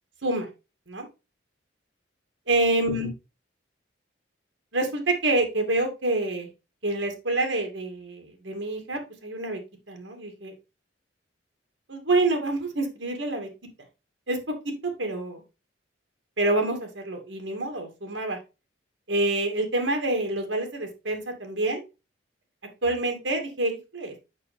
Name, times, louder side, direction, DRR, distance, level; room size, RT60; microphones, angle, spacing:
voice 1, 2.5-3.1 4.7-6.5 6.8-9.6 9.9-10.5 11.9-13.5 14.3-14.5 15.0-15.4 16.4-18.4 19.1-21.8 22.8-24.1, right 2 dB, 85° right, 4 dB, 2.3 m, -27 dB
6.8 x 6.2 x 3.6 m, 0.28 s
head